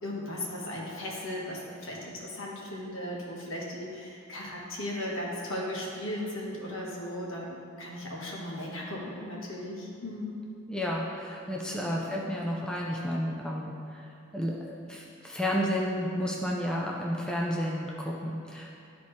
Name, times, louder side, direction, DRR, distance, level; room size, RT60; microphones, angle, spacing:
voice 1, 0.0-10.3 11.9-12.0, left 1 dB, 70° left, -3 dB, 1.3 m, -37 dB
voice 2, 10.7-13.7 14.3-18.8, equal, 5° left, -3 dB, 0.5 m, -31 dB
11.5 x 4.1 x 3.2 m, 2.5 s
head